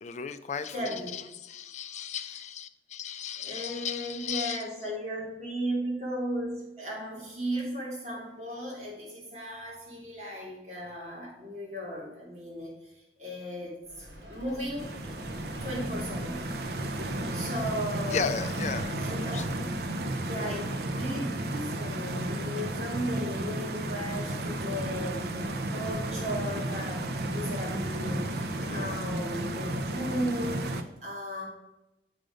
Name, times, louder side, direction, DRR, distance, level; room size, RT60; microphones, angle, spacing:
voice 1, 0.0-4.7 18.1-19.0 19.3-19.5 28.6-29.0, left 6 dB, 40° left, 11 dB, 0.4 m, -35 dB
voice 2, 0.7-1.1 3.4-12.7 13.2-15.0 15.6-16.5 17.3-18.3 19.0-19.4 19.7-19.8 20.2-31.4, equal, 40° right, -4 dB, 2.8 m, -36 dB
Vehicle, 13.8-20.3, equal, 75° right, 2.2 m, -45 dB
Stream, 14.8-30.8, right 1 dB, 60° right, 0.6 m, -33 dB
7.7 x 5.3 x 5.0 m, 0.96 s
head